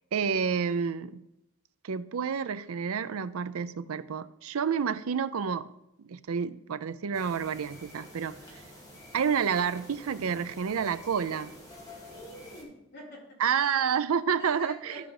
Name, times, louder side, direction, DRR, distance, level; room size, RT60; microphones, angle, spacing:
voice 1, 0.1-1.2 1.8-5.7 6.0-8.4 9.1-11.5 13.4-15.1, right 7 dB, 80° right, 15 dB, 0.5 m, -29 dB
sound 1, 7.1-12.6, left 1 dB, 15° left, 2.1 m, -48 dB
voice 2, 12.1-13.2 14.2-15.1, equal, 45° left, -6 dB, 3.9 m, -46 dB
12.5 x 5.0 x 4.8 m, 0.87 s
head